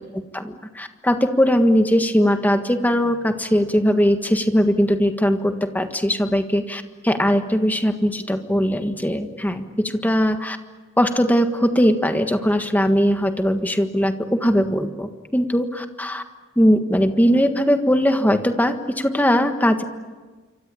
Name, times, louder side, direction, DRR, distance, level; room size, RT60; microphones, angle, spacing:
voice 1, 0.3-10.6 11.0-16.2 16.6-19.8, equal, 10° left, 7 dB, 1.5 m, -20 dB
27.5 x 25.0 x 8.5 m, 1.3 s
head